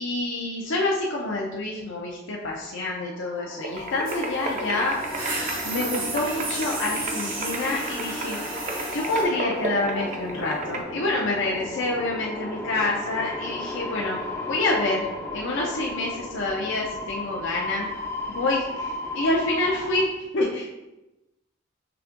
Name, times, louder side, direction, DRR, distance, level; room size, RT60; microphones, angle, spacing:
voice 1, 0.0-5.0 5.6-8.4 8.9-14.2 14.5-17.9 18.3-20.1 20.3-20.7, left 2 dB, 65° left, -2 dB, 0.6 m, -27 dB
sound 1, 3.1-20.1, left 2 dB, 15° left, 0.5 m, -35 dB
sound 2, 3.6-10.8, right 2 dB, 40° right, 0.5 m, -34 dB
sound 3, 4.1-9.2, right 3 dB, 70° right, 1.3 m, -34 dB
5.8 x 3.4 x 2.5 m, 0.98 s
head